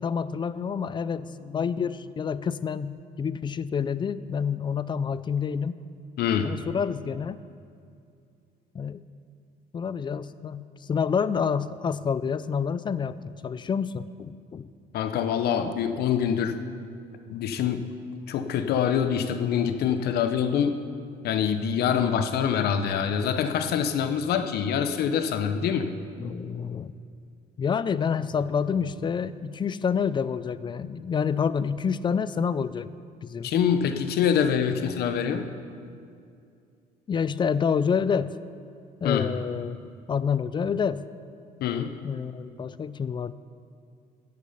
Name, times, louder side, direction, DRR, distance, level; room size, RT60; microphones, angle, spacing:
voice 1, 0.0-5.8 6.4-7.4 8.7-9.0 9.7-14.7 21.9-22.2 26.2-26.9 27.6-32.9 33.2-33.5 37.1-38.4 39.0-39.8 40.1-41.0 42.0-43.3, left 6 dB, 30° left, 16 dB, 0.4 m, -28 dB
voice 2, 6.2-6.5 14.9-16.5 17.3-17.9 18.3-20.8 21.2-25.9 33.4-35.5 39.0-39.3 41.6-41.9, left 8 dB, 70° left, 9 dB, 0.9 m, -25 dB
13.5 x 8.4 x 5.6 m, 2.4 s
cardioid pair, 110°, 17 cm